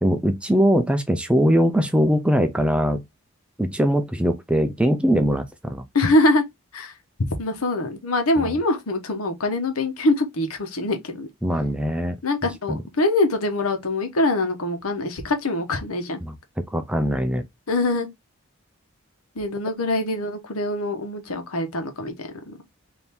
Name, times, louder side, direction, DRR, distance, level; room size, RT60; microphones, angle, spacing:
voice 1, 0.0-3.0 3.6-5.8 8.4-8.6 11.4-12.2 12.7-12.8 16.2-16.3 16.7-17.4, equal, 5° right, 0.4 m, -21 dB
voice 2, 5.9-6.4 6.7-6.9 7.4-11.3 12.2-16.2 17.7-18.1 19.3-22.6, left 2 dB, 90° left, 1.0 m, -23 dB
3.5 x 2.8 x 4.2 m
head